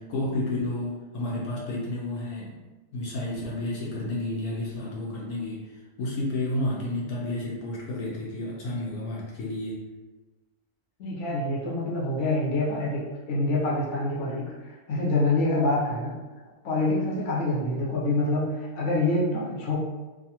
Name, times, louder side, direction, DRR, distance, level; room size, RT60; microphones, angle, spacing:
voice 1, 0.0-2.6 2.9-9.9, left 1 dB, 80° left, -4 dB, 1.1 m, -31 dB
voice 2, 11.0-13.0 13.3-16.1 16.6-19.8, left 2 dB, 60° left, -5 dB, 1.0 m, -26 dB
2.6 x 2.4 x 2.8 m, 1.2 s
omnidirectional pair, 1.6 m